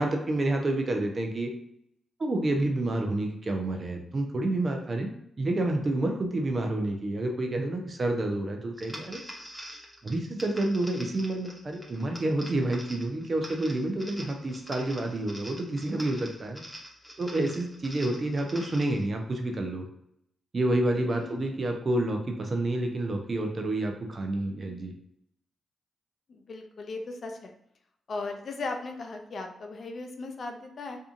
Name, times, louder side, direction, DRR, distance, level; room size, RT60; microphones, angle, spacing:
voice 1, 0.0-1.5 2.2-5.1 5.4-9.2 10.0-16.6 17.2-19.8 20.5-24.9, right 2 dB, 45° right, 3 dB, 0.5 m, -29 dB
sound 1, 8.8-19.0, equal, ahead, 0.8 m, -45 dB
voice 2, 21.2-21.5 26.3-27.5 28.1-31.0, left 3 dB, 55° left, 4 dB, 0.4 m, -37 dB
2.6 x 2.4 x 2.5 m, 0.75 s
hypercardioid pair, 40°, 0 cm